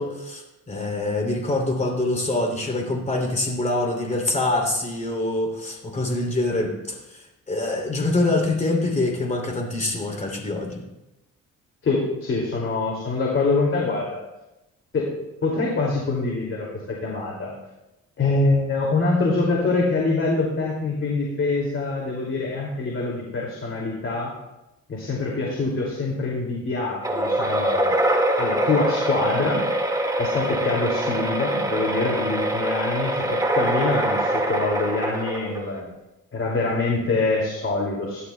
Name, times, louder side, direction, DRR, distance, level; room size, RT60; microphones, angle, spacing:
voice 1, 0.0-10.8, left 2 dB, 25° left, 1 dB, 3.0 m, -25 dB
voice 2, 11.8-14.2 14.9-17.5 18.2-24.3 24.9-27.9 28.4-29.6 30.2-35.9 36.3-38.2, left 3 dB, 45° left, -2 dB, 2.5 m, -25 dB
sound 1, 27.0-35.8, right 1 dB, 10° right, 1.8 m, -24 dB
16.5 x 11.5 x 2.3 m, 0.94 s
cardioid pair, 90°, 30 cm